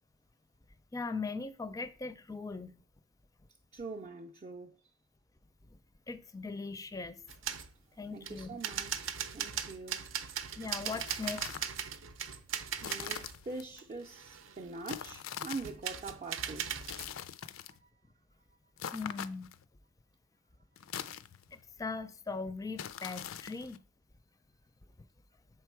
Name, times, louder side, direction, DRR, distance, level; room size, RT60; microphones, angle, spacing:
voice 1, 0.9-2.8 6.1-7.2 8.0-8.6 10.6-11.5 18.9-19.6 21.5-23.8, left 4 dB, 15° left, 0.4 m, -40 dB
voice 2, 3.7-4.8 8.1-10.1 12.8-16.8 17.3-17.8, right 3 dB, 35° right, 0.5 m, -44 dB
sound 1, 7.3-7.7 8.2-13.4 13.8-15.1 15.6-17.1, right 8 dB, 75° right, 0.6 m, -39 dB
sound 2, 10.8-11.8 12.8-13.7 14.9-15.8 16.8-17.8 18.8-19.6 20.8-21.6 22.8-23.8, left 9 dB, 85° left, 0.4 m, -43 dB
6.5 x 4.6 x 4.6 m
head